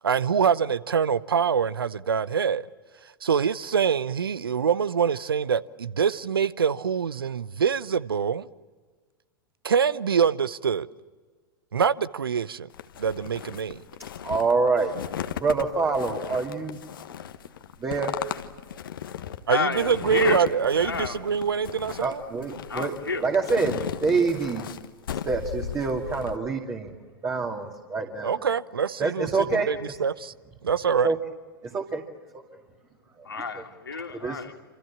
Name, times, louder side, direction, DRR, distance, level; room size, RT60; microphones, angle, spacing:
voice 1, 0.0-2.7 3.2-8.5 9.6-10.9 11.7-12.7 13.0-13.8 19.5-22.2 28.2-30.3 30.6-31.1, right 7 dB, 75° right, 0.9 m, -25 dB
sound 1, 12.7-26.4, left 9 dB, 65° left, 1.4 m, -36 dB
voice 2, 14.2-14.9 15.4-16.8 17.8-18.1 22.0-22.9 23.2-24.7 25.3-27.0 27.2-28.4 29.0-29.9 31.0-31.2 31.6-32.0 33.5-33.6 34.1-34.4, right 4 dB, 20° right, 2.4 m, -26 dB
voice 3, 19.5-20.5 20.8-21.2 22.7-23.2 33.2-34.6, left 5 dB, 80° left, 2.6 m, -30 dB
27.5 x 27.0 x 7.3 m
figure-of-eight pair, 95°, 12 cm